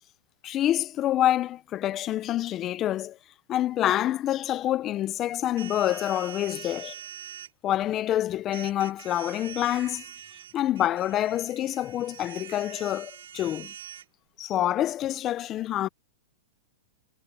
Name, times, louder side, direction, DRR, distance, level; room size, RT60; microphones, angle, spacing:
voice 1, 0.4-3.2 3.5-6.9 7.6-10.0 10.5-13.7 14.4-15.9, left 12 dB, 25° left, 0.4 m, -27 dB
sound 1, 5.6-7.5 8.5-14.1, right 10 dB, 80° right, 5.3 m, -44 dB
supercardioid pair, 160°, 0 cm